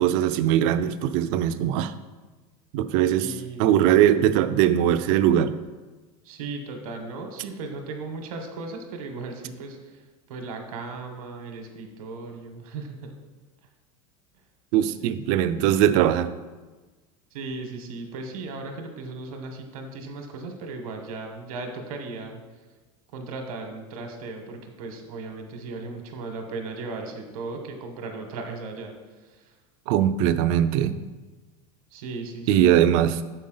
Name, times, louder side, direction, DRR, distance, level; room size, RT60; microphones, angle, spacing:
voice 1, 0.0-1.9 2.7-3.3 3.6-5.5 14.7-16.3 29.9-31.0 32.5-33.2, right 11 dB, 65° right, 12 dB, 0.5 m, -21 dB
voice 2, 3.1-3.7 6.2-13.1 15.0-15.1 17.3-22.4 23.1-29.6 31.9-32.7, right 3 dB, 90° right, 4 dB, 1.2 m, -37 dB
7.1 x 5.4 x 3.8 m, 1.3 s
supercardioid pair, 125°, 18 cm